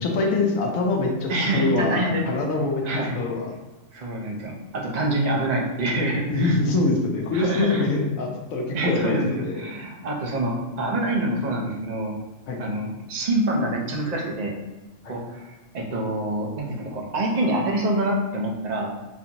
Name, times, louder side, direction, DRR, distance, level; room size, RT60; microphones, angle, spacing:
voice 1, 0.0-2.8 3.1-3.5 6.3-9.6 12.5-12.6 15.0-15.1, left 3 dB, 90° left, 0 dB, 1.1 m, -24 dB
voice 2, 1.3-2.2 2.8-3.2 3.9-6.6 7.3-7.9 8.7-9.3 9.6-12.1 12.6-14.5 15.1-18.9, right 1 dB, 45° right, -1 dB, 0.6 m, -26 dB
4.1 x 2.6 x 2.9 m, 1.1 s
omnidirectional pair, 1.4 m